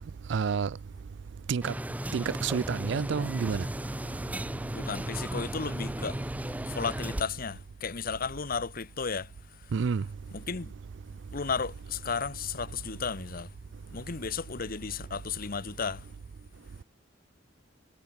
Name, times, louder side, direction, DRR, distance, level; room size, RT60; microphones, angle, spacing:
voice 1, 0.3-0.8 1.5-1.7 2.1-3.7 9.7-10.0, right 6 dB, 65° right, 0.4 m, -29 dB
sound 1, 1.6-7.2, right 1 dB, 10° right, 0.8 m, -35 dB
voice 2, 4.7-6.2 6.7-9.3 10.3-10.7 11.3-13.5 13.9-16.1, left 5 dB, 50° left, 0.9 m, -34 dB
head